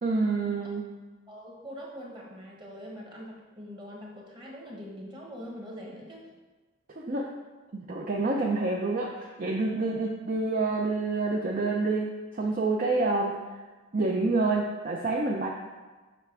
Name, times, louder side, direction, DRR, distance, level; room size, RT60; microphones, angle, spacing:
voice 1, 0.0-0.8 7.0-7.3 7.7-13.4 13.9-15.5, right 3 dB, 40° right, -1 dB, 0.5 m, -28 dB
voice 2, 1.3-6.3, equal, 25° right, -2 dB, 1.2 m, -43 dB
7.2 x 5.6 x 3.4 m, 1.3 s
head